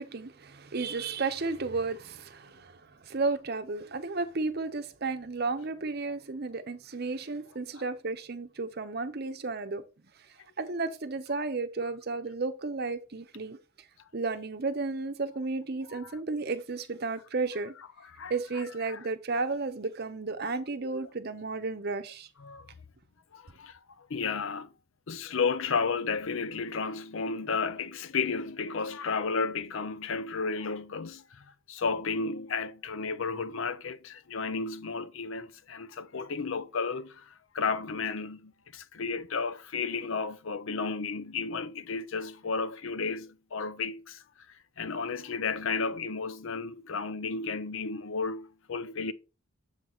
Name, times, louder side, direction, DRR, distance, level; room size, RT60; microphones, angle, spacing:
voice 1, 0.0-9.8 10.6-13.6 14.1-17.7 18.3-22.3, right 3 dB, 45° right, 0.7 m, -33 dB
voice 2, 18.0-18.3 18.8-19.0 22.4-22.7 23.3-24.7 25.1-44.2 44.8-49.1, left 4 dB, 65° left, 0.6 m, -33 dB
7.4 x 4.0 x 4.3 m
head